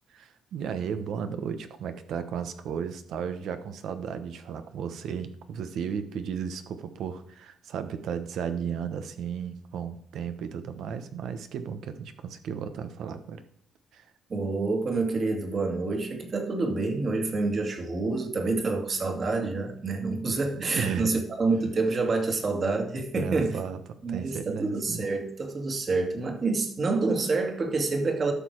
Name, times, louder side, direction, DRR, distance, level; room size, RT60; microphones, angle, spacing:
voice 1, 0.1-13.4 13.9-14.0 20.6-21.1 23.2-23.8 24.1-25.0, right 7 dB, 75° right, 9 dB, 1.1 m, -34 dB
voice 2, 14.3-23.6 24.0-28.3, right 3 dB, 40° right, 4 dB, 2.2 m, -27 dB
11.5 x 6.7 x 4.6 m, 0.67 s
cardioid pair, 90°, 0 cm